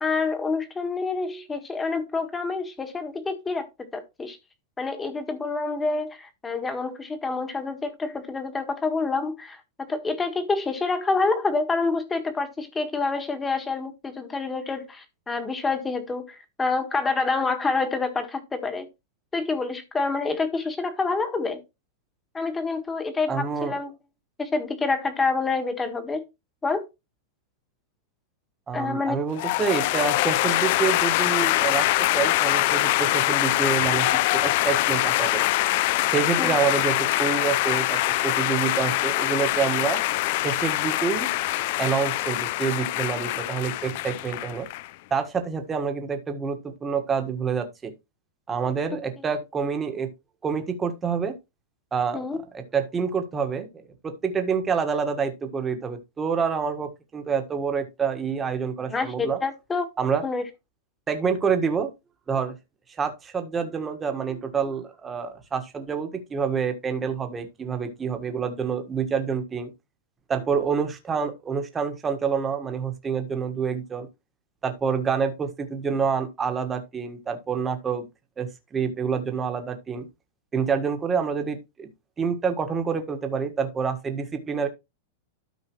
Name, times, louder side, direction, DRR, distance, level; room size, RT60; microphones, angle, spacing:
voice 1, 0.0-4.4 4.8-18.9 19.3-21.6 22.3-23.9 24.4-26.2 26.6-26.9 28.7-29.2 36.4-36.5 52.1-52.4 58.9-59.9 60.2-60.4, left 3 dB, 15° left, 1.7 m, -27 dB
voice 2, 23.3-23.7 28.7-31.9 32.1-35.5 36.1-40.0 40.4-41.3 41.8-44.7 45.1-47.9 48.5-50.1 50.4-51.3 51.9-52.2 52.5-53.7 54.0-59.4 60.0-60.2 61.1-61.9 62.3-62.6 62.9-69.7 70.3-74.1 74.6-78.1 78.4-80.1 80.5-81.9 82.2-84.7, right 6 dB, 15° right, 1.6 m, -27 dB
sound 1, 29.4-44.9, left 18 dB, 55° left, 0.4 m, -24 dB
12.5 x 5.4 x 3.2 m
supercardioid pair, 145°, 0 cm